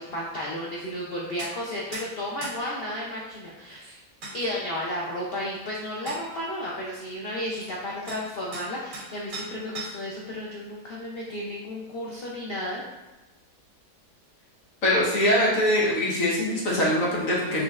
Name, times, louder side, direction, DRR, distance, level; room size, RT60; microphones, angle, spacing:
voice 1, 0.0-4.0 4.3-12.8, left 1 dB, 80° left, -4 dB, 0.5 m, -33 dB
sound 1, 1.4-1.5 1.9-2.1 2.4-2.6 3.8-3.9 4.2-4.4 5.5-5.6 6.1-6.2 7.6-7.7 8.1-8.2 8.5-9.1 9.3-10.1, right 2 dB, 55° right, 1.9 m, -38 dB
voice 2, 14.8-17.6, left 1 dB, 55° left, -6 dB, 1.4 m, -23 dB
5.1 x 3.3 x 2.4 m, 1.1 s
omnidirectional pair, 1.8 m